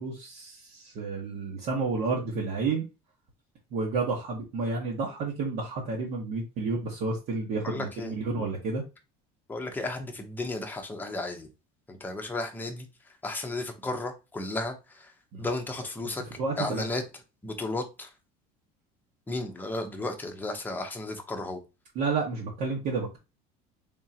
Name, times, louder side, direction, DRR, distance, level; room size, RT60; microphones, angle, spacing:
voice 1, 0.0-2.8 3.7-8.8 15.3-15.5 16.0-16.8 21.9-23.2, right 4 dB, 55° right, 1.2 m, -31 dB
voice 2, 7.6-8.1 9.5-11.5 11.9-12.9 13.2-15.1 15.4-16.2 16.6-17.0 17.4-18.1 19.3-21.6, left 2 dB, 10° left, 0.8 m, -34 dB
3.7 x 3.6 x 2.8 m
cardioid pair, 145°, 17 cm